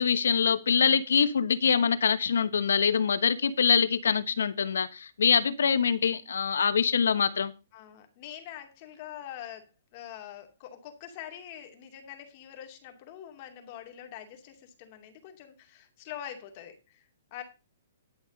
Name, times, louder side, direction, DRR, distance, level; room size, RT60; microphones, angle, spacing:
voice 1, 0.0-7.5, left 6 dB, 85° left, 14 dB, 1.2 m, -24 dB
voice 2, 7.7-17.4, left 10 dB, 35° left, 5 dB, 2.5 m, -44 dB
11.5 x 6.4 x 5.3 m, 0.29 s
hypercardioid pair, 160°, 0 cm